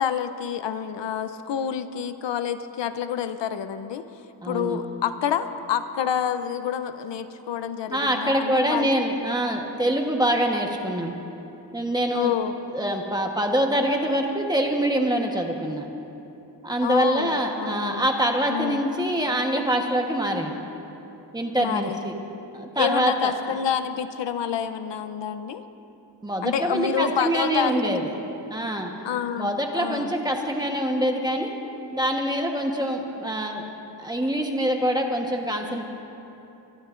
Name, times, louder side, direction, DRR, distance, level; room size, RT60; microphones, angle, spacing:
voice 1, 0.0-4.0 4.4-8.9 12.1-12.5 16.8-18.0 18.5-18.8 21.6-22.0 22.8-25.6 26.4-27.9 29.0-30.1, left 8 dB, 75° left, 10 dB, 0.7 m, -28 dB
voice 2, 4.4-4.8 7.9-11.1 11.7-12.3 12.7-15.9 16.6-20.6 21.3-22.1 22.5-23.3 26.2-28.1 28.5-28.9 29.4-31.5 31.9-33.6 34.0-35.8, right 1 dB, 10° right, 1 dB, 1.1 m, -25 dB
25.0 x 20.0 x 2.5 m, 2.9 s
wide cardioid pair, 170°, 44 cm